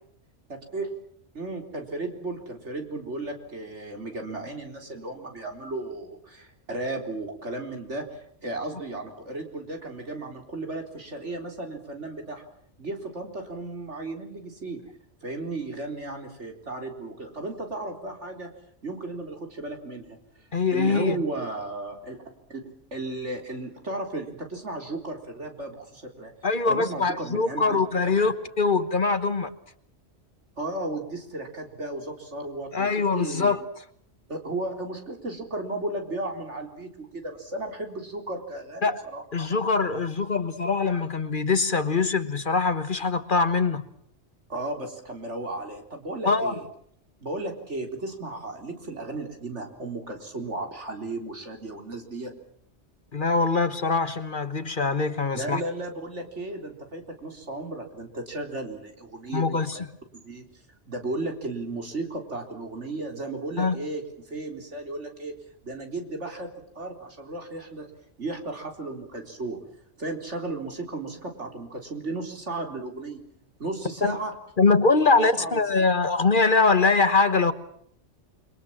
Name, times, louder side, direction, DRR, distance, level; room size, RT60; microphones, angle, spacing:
voice 1, 0.5-0.9 1.3-12.4 12.8-14.8 15.2-18.5 18.8-20.2 20.7-22.2 22.5-22.6 22.9-26.3 26.6-27.8 28.2-28.3 30.6-33.6 34.3-39.2 44.5-46.7 47.2-52.3 55.3-59.8 60.1-60.5 60.9-65.3 65.6-66.5 66.8-67.9 68.2-69.6 70.0-73.2 73.6-74.3 75.3-75.6, right 2 dB, 75° right, 4.3 m, -34 dB
voice 2, 20.5-21.2 26.4-29.5 32.7-33.6 38.8-39.0 39.3-43.8 46.3-46.5 53.1-55.6 59.3-59.7 63.6-63.7 74.0-74.2 74.6-77.5, left 4 dB, 45° left, 1.4 m, -23 dB
29.0 x 23.0 x 7.4 m
omnidirectional pair, 1.2 m